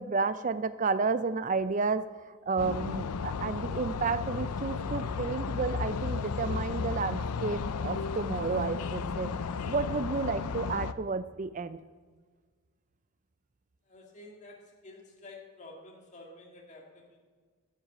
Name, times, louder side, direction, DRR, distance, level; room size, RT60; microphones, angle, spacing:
voice 1, 0.0-9.3 9.7-11.8, right 4 dB, 35° right, 14 dB, 0.4 m, -31 dB
sound 1, 2.6-10.9, left 5 dB, 90° left, 0.5 m, -34 dB
voice 2, 13.8-17.2, left 2 dB, 35° left, 0 dB, 2.1 m, -50 dB
12.0 x 8.0 x 7.6 m, 1.5 s
head